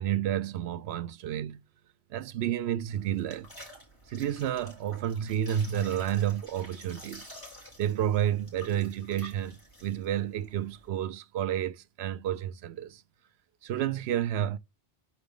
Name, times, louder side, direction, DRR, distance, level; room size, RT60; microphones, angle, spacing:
voice 1, 0.0-1.6 2.1-3.5 4.1-7.3 7.8-13.0 13.6-14.6, right 10 dB, 90° right, 0.8 m, -30 dB
sound 1, 2.9-10.9, left 1 dB, 20° left, 4.3 m, -51 dB
4.8 x 4.4 x 5.3 m
omnidirectional pair, 1.0 m